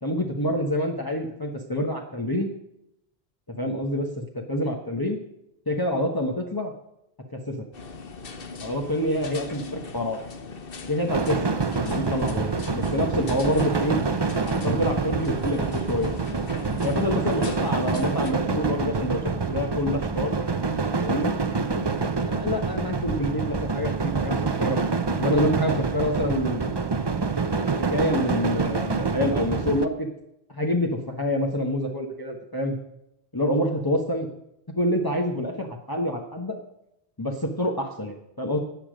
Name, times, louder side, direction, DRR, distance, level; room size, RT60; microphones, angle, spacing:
voice 1, 0.0-2.5 3.5-5.2 5.7-6.7 7.3-7.6 8.6-9.6 9.9-10.2 10.9-11.4 11.8-14.0 14.5-16.1 16.8-20.4 21.0-21.3 22.2-24.8 25.2-26.7 27.5-27.6 27.9-30.1 30.5-32.8 33.3-34.3 34.7-36.6 37.2-38.6, left 1 dB, 20° left, 0 dB, 1.2 m, -27 dB
sound 1, 7.7-18.3, left 4 dB, 60° left, 1.3 m, -40 dB
sound 2, 11.1-29.9, right 4 dB, 30° right, 0.7 m, -26 dB
14.0 x 9.0 x 5.1 m, 0.82 s
omnidirectional pair, 1.1 m